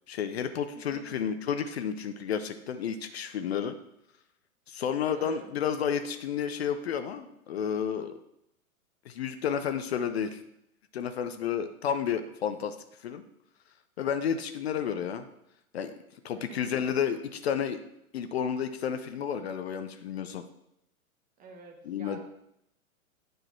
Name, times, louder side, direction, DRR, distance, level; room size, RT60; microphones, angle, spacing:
voice 1, 0.1-3.7 4.7-8.1 9.1-10.4 10.9-13.2 14.0-15.2 15.7-15.9 16.2-17.8 18.1-20.4 21.9-22.2, left 8 dB, 50° left, 9 dB, 0.6 m, -31 dB
voice 2, 0.7-1.3 5.1-5.5 14.7-15.1 16.3-16.8 21.4-22.2, right 4 dB, 20° right, 3 dB, 1.0 m, -49 dB
9.2 x 3.9 x 4.5 m, 0.80 s
figure-of-eight pair, 110°, 42 cm